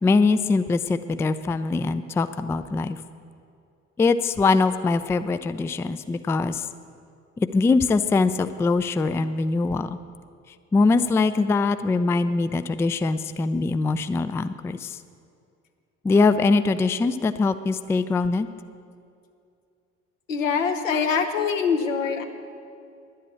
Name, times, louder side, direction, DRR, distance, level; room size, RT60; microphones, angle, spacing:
voice 1, 0.0-3.0 4.0-6.7 7.4-10.0 10.7-15.0 16.0-18.5, left 3 dB, 5° left, 12 dB, 0.3 m, -22 dB
voice 2, 20.3-22.2, left 6 dB, 80° left, 5 dB, 1.0 m, -24 dB
10.5 x 7.9 x 8.5 m, 2.4 s
figure-of-eight pair, 50°, 39 cm